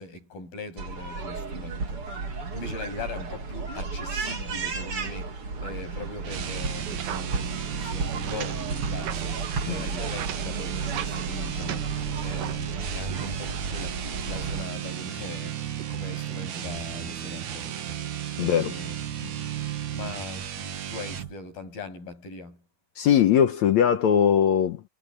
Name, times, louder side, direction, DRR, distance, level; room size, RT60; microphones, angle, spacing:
voice 1, 0.0-18.0 18.4-19.0 19.3-19.4 19.9-22.6, left 3 dB, 85° left, 9.8 m, -41 dB
sound 1, 0.8-14.6, right 4 dB, 40° right, 3.4 m, -33 dB
sound 2, 6.2-21.3, right 10 dB, 60° right, 2.8 m, -34 dB
sound 3, 6.5-12.7 13.0-15.9, right 12 dB, 75° right, 2.9 m, -41 dB
voice 2, 18.4-18.7 23.0-24.8, left 9 dB, 65° left, 2.0 m, -20 dB
omnidirectional pair, 4.0 m